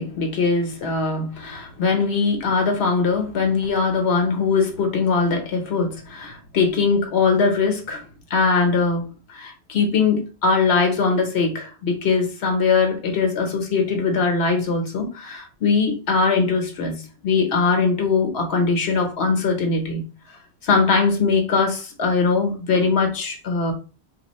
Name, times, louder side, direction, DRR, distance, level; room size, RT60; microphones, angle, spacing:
voice 1, 0.0-20.0 20.6-23.7, left 4 dB, 85° left, 1.1 m, -21 dB
2.6 x 2.4 x 4.0 m
omnidirectional pair, 1.1 m